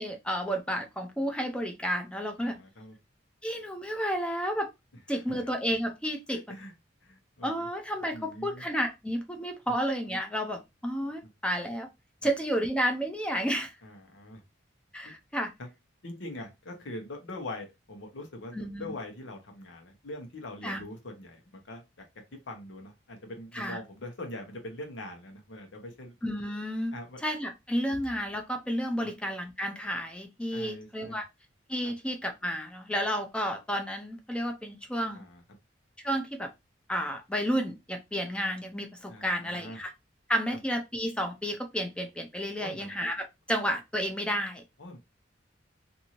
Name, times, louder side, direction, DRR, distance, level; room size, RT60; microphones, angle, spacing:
voice 1, 0.0-2.6 3.4-4.7 5.1-6.4 7.4-11.9 12.2-13.7 14.9-15.5 18.5-19.0 20.6-20.8 23.5-23.8 26.2-31.3 31.7-35.2 36.0-36.5 36.9-39.9 40.3-44.6, equal, 5° left, 4 dB, 0.5 m, -31 dB
voice 2, 2.4-2.9 5.3-5.5 6.3-6.7 7.0-7.7 8.1-8.6 9.7-9.8 13.8-14.4 15.0-15.1 15.6-15.7 16.0-22.1 22.5-26.2 26.9-27.2 29.0-29.1 30.5-31.2 31.8-31.9 35.1-35.4 39.1-39.8 40.5-40.6 42.6-42.9 44.8-45.0, left 1 dB, 80° left, 3 dB, 0.9 m, -43 dB
2.6 x 2.6 x 2.9 m, 0.23 s
head